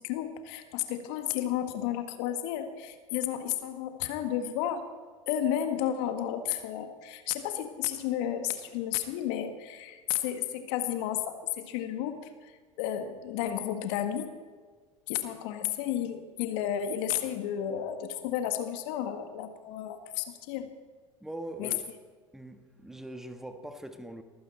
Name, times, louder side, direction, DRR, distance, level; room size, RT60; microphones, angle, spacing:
voice 1, 0.0-4.9 5.3-14.3 15.1-20.7 21.6-21.8, left 10 dB, 60° left, 8 dB, 1.7 m, -32 dB
voice 2, 21.2-21.8 22.3-24.2, right 1 dB, ahead, 7 dB, 1.4 m, -42 dB
22.5 x 15.0 x 4.3 m, 1.5 s
hypercardioid pair, 80°, 17 cm